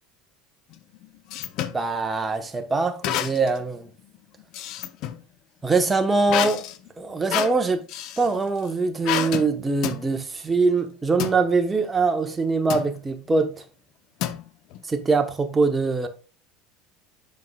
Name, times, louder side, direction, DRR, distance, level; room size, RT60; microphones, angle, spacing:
sound 1, 0.7-1.8 3.0-3.6 4.0-5.2 6.3-8.3 9.0-9.5 9.8-10.0 11.2-11.4 12.7-13.0 14.2-14.8, left 11 dB, 60° left, 0.6 m, -29 dB
voice 1, 1.7-3.9 5.6-6.6 7.0-7.8 8.2-13.5 14.9-16.1, right 3 dB, 15° right, 1.0 m, -23 dB
7.5 x 5.5 x 2.3 m
supercardioid pair, 120°, 0 cm